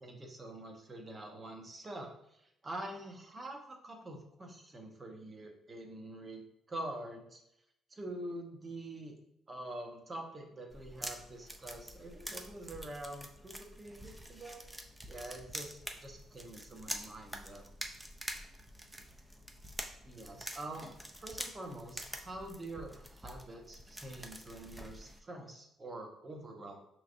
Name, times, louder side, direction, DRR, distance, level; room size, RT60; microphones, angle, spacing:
voice 1, 0.0-2.1 2.6-6.4 6.7-7.4 7.9-9.2 9.5-14.6 15.1-17.7 20.0-20.9 21.2-26.8, right 1 dB, 30° right, 3 dB, 0.8 m, -45 dB
sound 1, 10.7-25.2, equal, 5° right, 0.5 m, -46 dB
5.6 x 3.1 x 2.6 m, 0.79 s
cardioid pair, 100°, 0 cm